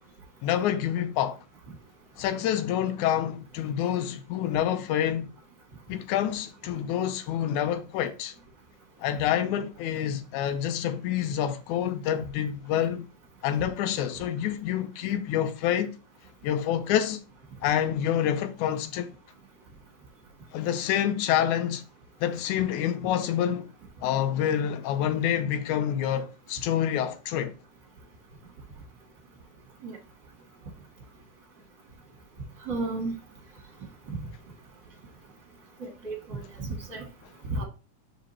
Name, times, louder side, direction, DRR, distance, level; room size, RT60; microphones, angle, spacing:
voice 1, 0.4-1.4 2.2-5.3 5.9-8.3 9.0-13.1 13.4-16.0 16.4-17.2 17.6-19.1 20.5-21.8 22.2-23.7 24.0-27.6, left 10 dB, 80° left, 2.1 m, -27 dB
voice 2, 32.7-33.1 34.1-34.2 35.8-37.0 37.5-37.6, right 3 dB, 40° right, 2.4 m, -33 dB
5.3 x 5.1 x 4.2 m
omnidirectional pair, 3.5 m